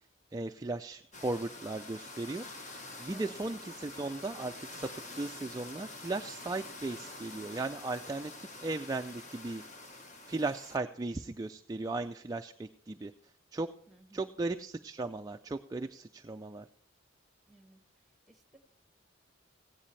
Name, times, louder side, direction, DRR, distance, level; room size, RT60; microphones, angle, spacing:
voice 1, 0.3-2.4 3.0-4.9 5.2-9.6 9.9-13.1 13.5-13.7 14.1-16.7, right 2 dB, 20° right, 6 dB, 0.3 m, -37 dB
sound 1, 1.1-10.8, left 2 dB, 40° left, 1.4 m, -47 dB
voice 2, 3.1-3.4 13.9-14.4 17.5-18.6, right 2 dB, ahead, 5 dB, 1.3 m, -59 dB
16.0 x 10.0 x 3.2 m, 0.67 s
head